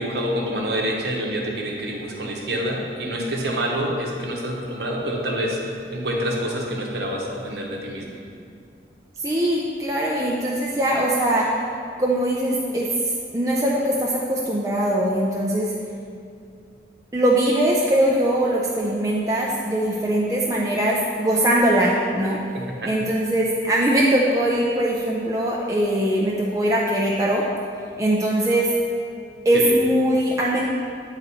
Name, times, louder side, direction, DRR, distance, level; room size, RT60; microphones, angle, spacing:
voice 1, 0.0-5.6 5.9-8.1 22.5-22.9 29.5-29.8, equal, 65° right, -1 dB, 0.9 m, -27 dB
voice 2, 9.2-11.5 12.0-12.9 13.3-15.7 17.1-22.4 22.8-27.5 28.0-28.7 29.4-30.7, right 1 dB, 20° right, -4 dB, 0.4 m, -21 dB
8.3 x 4.0 x 4.2 m, 2.3 s
head